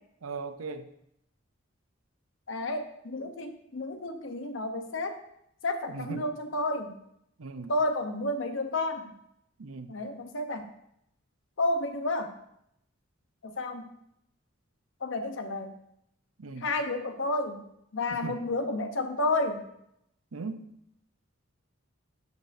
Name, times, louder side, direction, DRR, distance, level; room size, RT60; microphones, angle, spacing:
voice 1, 0.2-0.9 5.9-6.2 7.4-7.7 9.6-9.9 16.4-16.7 18.2-18.4 20.3-20.7, right 4 dB, 90° right, 9 dB, 0.7 m, -38 dB
voice 2, 2.5-5.2 5.6-7.0 7.7-9.1 9.9-10.7 11.6-12.3 13.4-13.9 15.0-15.7 16.6-17.6 17.9-19.6, left 2 dB, 65° left, 6 dB, 0.9 m, -31 dB
12.0 x 6.5 x 2.7 m, 0.76 s
head